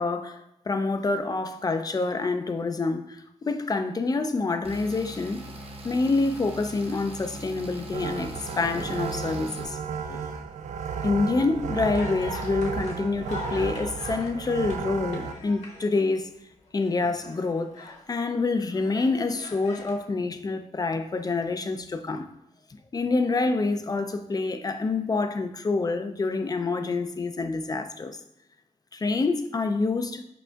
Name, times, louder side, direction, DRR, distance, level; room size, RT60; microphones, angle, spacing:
voice 1, 0.0-5.4 5.8-9.8 10.1-10.3 11.0-16.3 16.7-22.3 22.9-28.2 28.9-30.2, left 3 dB, 30° left, 0.4 m, -27 dB
sound 1, 4.6-9.6, right 1 dB, 50° right, 0.9 m, -41 dB
sound 2, 7.9-15.3, right 6 dB, 75° right, 0.4 m, -33 dB
sound 3, 11.7-16.2 16.7-18.0 18.5-20.0, left 2 dB, 65° left, 1.2 m, -43 dB
5.0 x 4.7 x 2.3 m
cardioid pair, 85°, 12 cm